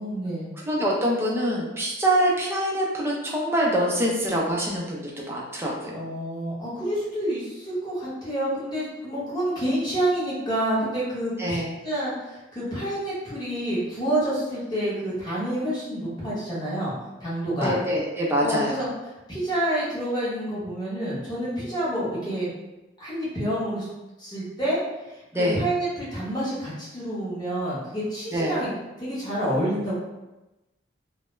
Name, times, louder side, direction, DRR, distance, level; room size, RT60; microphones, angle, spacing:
voice 1, 0.0-0.5 5.9-16.9 17.2-17.7 18.4-18.9 19.3-22.5 23.0-23.9 24.2-24.8 25.1-28.7 29.0-29.9, right 1 dB, 20° left, -9 dB, 0.8 m, -28 dB
voice 2, 0.7-5.9 11.4-11.7 17.6-18.8 25.3-25.6 28.3-28.6, equal, 10° right, -3 dB, 0.4 m, -25 dB
2.2 x 2.0 x 3.0 m, 1.0 s
head